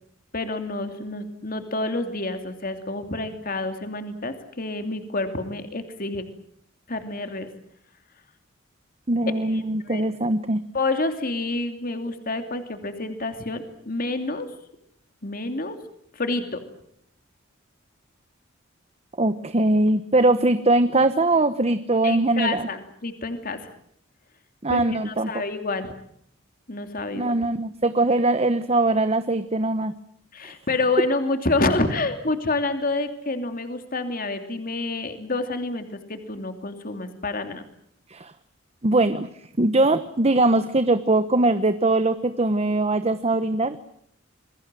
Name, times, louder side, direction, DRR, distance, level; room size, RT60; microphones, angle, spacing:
voice 1, 0.3-6.3 6.9-7.5 9.9-10.0 10.7-14.5 15.2-15.8 16.1-16.6 22.0-23.7 24.7-25.9 26.7-27.3 30.3-37.6, left 2 dB, 45° left, 7 dB, 2.8 m, -28 dB
voice 2, 9.1-10.6 19.2-22.7 24.6-25.4 27.1-29.9 30.4-30.5 38.1-38.3 38.8-39.3 39.6-43.8, right 2 dB, 30° right, 11 dB, 1.0 m, -21 dB
28.5 x 22.0 x 7.7 m, 0.69 s
head